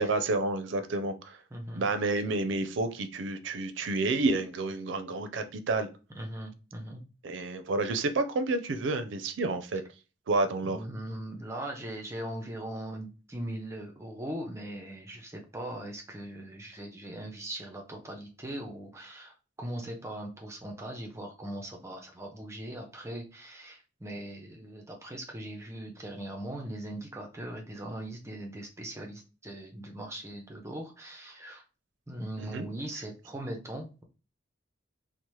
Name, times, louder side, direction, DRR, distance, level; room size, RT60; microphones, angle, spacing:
voice 1, 0.0-1.4 1.8-5.9 7.2-9.8 10.3-10.8 32.4-32.7, right 3 dB, 70° right, 0.4 m, -30 dB
voice 2, 1.5-1.9 6.2-7.0 7.3-7.4 10.6-31.6 32.1-34.0, right 1 dB, 15° right, 0.5 m, -40 dB
2.8 x 2.1 x 3.0 m
head